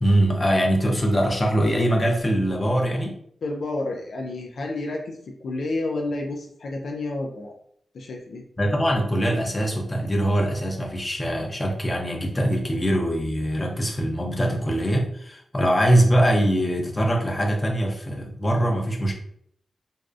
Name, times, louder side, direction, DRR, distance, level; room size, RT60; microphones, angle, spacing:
voice 1, 0.0-3.2 8.6-19.1, right 1 dB, 25° left, 1 dB, 0.6 m, -22 dB
voice 2, 3.4-5.2 5.4-7.5 7.9-8.4, left 2 dB, 75° left, 1 dB, 0.3 m, -30 dB
2.5 x 2.0 x 2.4 m, 0.66 s
cardioid pair, 75°, 0 cm